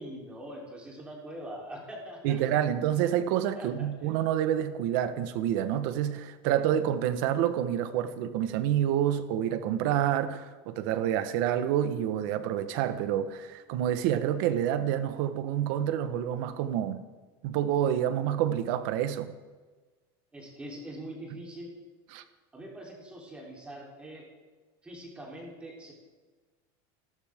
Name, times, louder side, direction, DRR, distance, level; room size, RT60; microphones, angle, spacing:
voice 1, 0.0-2.4 3.6-3.9 20.3-21.7 22.5-24.3 24.8-25.9, right 1 dB, 10° right, -2 dB, 3.5 m, -43 dB
voice 2, 2.2-17.0 17.4-19.3 22.1-22.2, right 10 dB, 55° right, 10 dB, 1.3 m, -28 dB
28.0 x 12.5 x 3.7 m, 1.3 s
cardioid pair, 175°, 13 cm